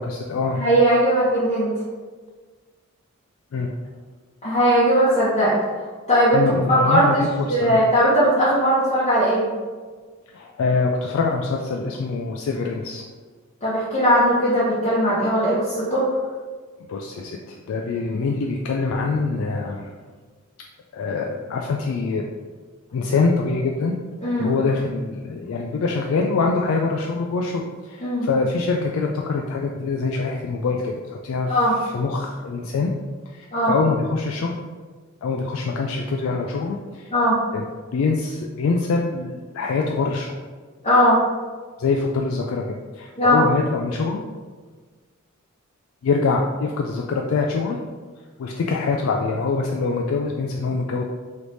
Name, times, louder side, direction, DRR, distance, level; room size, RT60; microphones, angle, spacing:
voice 1, 0.0-0.6 3.5-3.7 6.3-7.8 10.3-13.0 16.9-19.9 20.9-22.2 22.9-24.0 24.4-31.6 31.8-32.9 33.3-34.5 35.2-37.1 37.5-37.6 37.9-40.3 41.8-44.2 46.0-47.8 48.4-51.0, left 4 dB, 70° left, 0 dB, 0.3 m, -24 dB
voice 2, 0.5-1.7 4.4-5.6 6.1-7.2 7.5-9.5 13.6-16.1 24.2-24.5 28.0-28.3 31.5-31.8 33.5-33.7 37.1-37.4 40.8-41.2 43.2-43.4, equal, 30° left, -10 dB, 0.9 m, -18 dB
3.3 x 3.1 x 3.9 m, 1.5 s
head